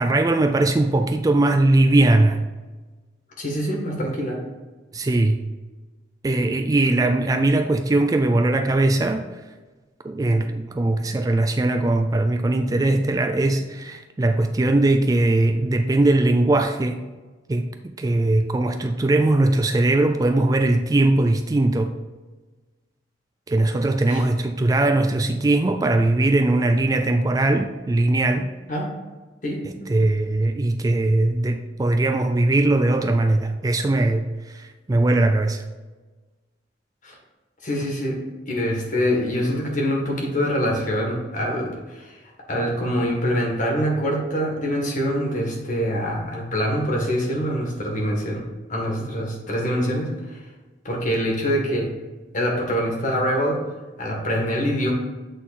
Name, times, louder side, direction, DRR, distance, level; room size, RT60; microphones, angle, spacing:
voice 1, 0.0-2.4 4.9-5.4 6.2-9.3 10.0-17.0 17.5-21.9 23.5-28.5 29.9-35.6, right 2 dB, 20° right, 7 dB, 0.3 m, -20 dB
voice 2, 3.4-4.4 24.1-24.2 28.7-28.9 29.4-29.9 37.0-37.2 37.6-38.2 38.5-42.1 42.5-48.4 48.7-50.4 50.9-51.9 52.3-53.6 54.0-54.9, equal, 45° left, -1 dB, 1.7 m, -24 dB
8.1 x 3.8 x 4.2 m, 1.3 s
head